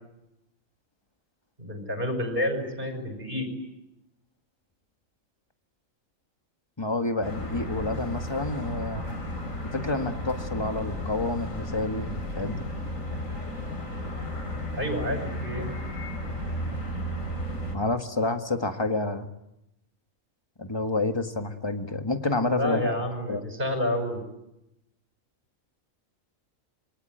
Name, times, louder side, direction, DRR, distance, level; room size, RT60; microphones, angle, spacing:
voice 1, 1.6-3.5 14.7-15.7 22.5-24.2, left 1 dB, 40° right, 6 dB, 5.9 m, -29 dB
voice 2, 6.8-9.0 9.6-12.6 17.7-19.3 20.6-22.9 23.3-23.4, left 2 dB, 20° left, 6 dB, 1.8 m, -29 dB
sound 1, 7.2-17.8, equal, 70° left, 4.8 m, -34 dB
26.5 x 23.5 x 9.3 m, 0.89 s
omnidirectional pair, 1.4 m